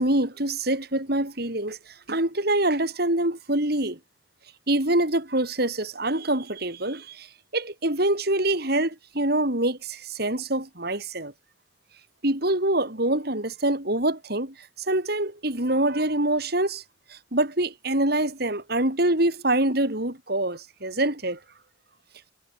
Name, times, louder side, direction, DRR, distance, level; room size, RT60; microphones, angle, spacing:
voice 1, 0.0-1.8 2.1-4.0 4.7-7.3 7.5-11.3 12.2-16.8 17.1-21.4, right 1 dB, 55° right, 4.1 m, -25 dB
head